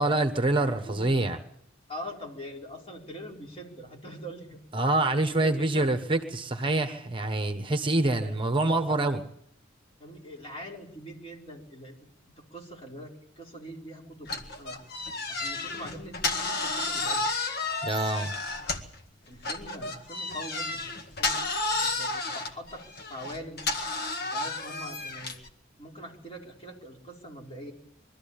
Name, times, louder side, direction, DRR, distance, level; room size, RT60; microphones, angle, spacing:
voice 1, 0.0-1.4 4.7-9.2 17.8-18.3, right 2 dB, 25° right, 7 dB, 1.1 m, -26 dB
voice 2, 0.9-1.3 1.9-4.6 5.3-6.0 8.2-8.4 10.0-11.9 12.4-14.8 15.3-17.2 19.2-20.8 21.2-23.6 24.2-25.4 25.8-27.7, equal, 30° left, -1 dB, 4.5 m, -43 dB
sound 1, 14.3-19.0 19.4-25.5, left 3 dB, 55° left, 1.8 m, -32 dB
23.0 x 13.5 x 8.7 m, 0.71 s
head